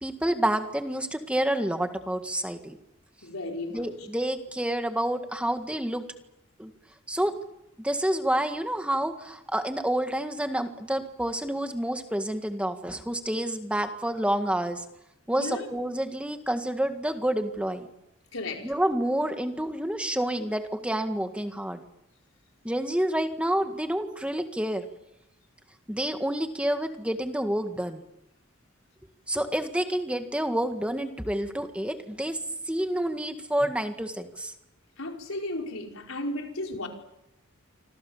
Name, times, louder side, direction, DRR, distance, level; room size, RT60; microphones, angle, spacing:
voice 1, 0.0-2.8 3.7-6.1 6.6-6.7 7.1-7.4 7.8-14.8 15.3-17.9 18.6-21.8 22.7-24.8 25.9-28.0 29.3-32.4 32.7-34.5, right 1 dB, 5° right, 1.8 m, -28 dB
voice 2, 3.2-3.9 15.4-15.7 18.3-18.7 35.0-36.9, left 1 dB, 90° left, 4.9 m, -34 dB
28.0 x 25.5 x 7.2 m
head